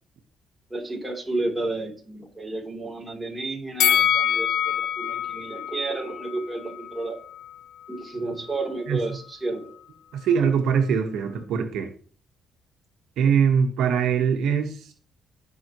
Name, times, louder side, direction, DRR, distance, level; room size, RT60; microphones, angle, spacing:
voice 1, 0.7-7.2 7.9-9.7, right 2 dB, 15° right, 0 dB, 3.4 m, -31 dB
Bell, 3.8-7.0 7.3-7.5, left 10 dB, 80° left, 0.7 m, -25 dB
voice 2, 10.1-11.9 13.2-14.7, right 7 dB, 80° right, 4 dB, 1.3 m, -22 dB
17.0 x 5.7 x 3.1 m, 0.43 s
cardioid pair, 90°, 0 cm